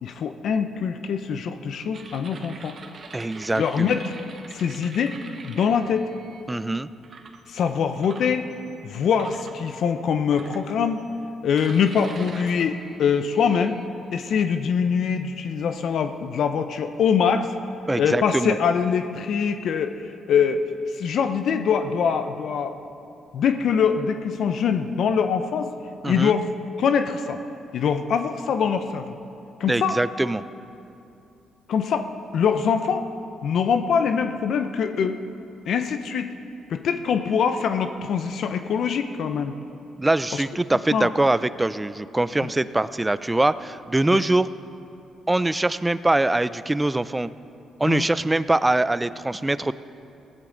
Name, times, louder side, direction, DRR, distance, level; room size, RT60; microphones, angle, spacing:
voice 1, 0.0-2.8 3.5-4.1 4.5-5.2 5.4-6.1 7.5-8.5 8.8-11.0 11.4-13.8 14.1-17.5 18.0-20.6 20.9-22.7 23.3-25.7 26.1-26.5 26.8-27.4 27.7-29.2 29.6-30.0 31.7-33.1 33.4-35.2 35.7-36.3 36.7-39.5 40.3-40.4 40.9-41.1 42.4-42.5 44.1-44.2 47.9-48.1, left 6 dB, 65° left, 8 dB, 0.6 m, -23 dB
sound 1, 1.9-6.5 7.0-7.4 8.0-8.7 9.2-9.6 10.3-11.0 11.6-13.9, right 4 dB, 50° right, 1.3 m, -44 dB
voice 2, 3.1-4.0 6.5-6.9 17.9-18.6 26.0-26.3 29.7-30.4 40.0-44.5 45.3-47.3 47.8-49.7, right 2 dB, 15° right, 15 dB, 0.4 m, -23 dB
16.5 x 15.5 x 3.9 m, 2.7 s
cardioid pair, 90°, 0 cm